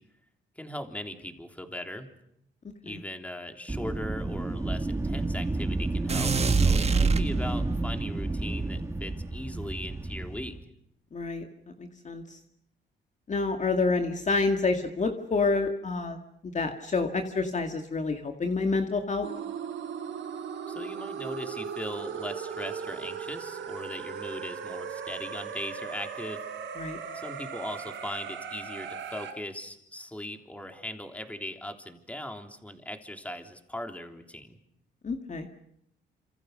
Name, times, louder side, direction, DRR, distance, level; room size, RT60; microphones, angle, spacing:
voice 1, 0.6-2.1 2.8-10.5 20.7-26.4 27.1-34.6, left 1 dB, 5° left, 5 dB, 3.4 m, -39 dB
Wind, 3.7-10.6, right 2 dB, 15° right, 1.6 m, -31 dB
sound 1, 6.1-7.9, right 5 dB, 30° right, 1.5 m, -25 dB
voice 2, 11.1-11.4 11.8-12.4 13.3-16.2 16.4-19.3 26.8-27.0 35.0-35.5, left 3 dB, 35° left, 5 dB, 2.2 m, -28 dB
sound 2, 19.2-29.3, right 7 dB, 75° right, 4.8 m, -38 dB
28.0 x 26.5 x 6.7 m, 0.79 s
cardioid pair, 90°, 20 cm